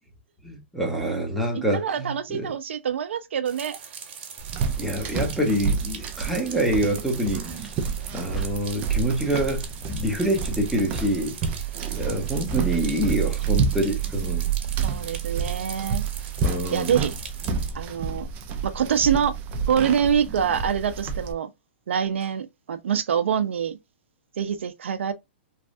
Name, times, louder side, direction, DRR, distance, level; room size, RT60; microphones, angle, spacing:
voice 1, 0.4-2.5 4.8-7.7 8.1-11.4 11.9-14.5 16.4-17.0, right 1 dB, ahead, 0.8 m, -26 dB
voice 2, 1.5-3.8 14.8-16.0 16.7-17.1 17.7-18.3 18.6-19.3 19.7-21.5 21.9-23.8 24.4-25.1, right 8 dB, 85° right, 0.5 m, -25 dB
sound 1, 3.4-17.7, right 7 dB, 60° right, 1.3 m, -41 dB
sound 2, 4.4-21.3, right 6 dB, 25° right, 0.5 m, -29 dB
3.2 x 2.3 x 2.5 m
hypercardioid pair, 155°, 6 cm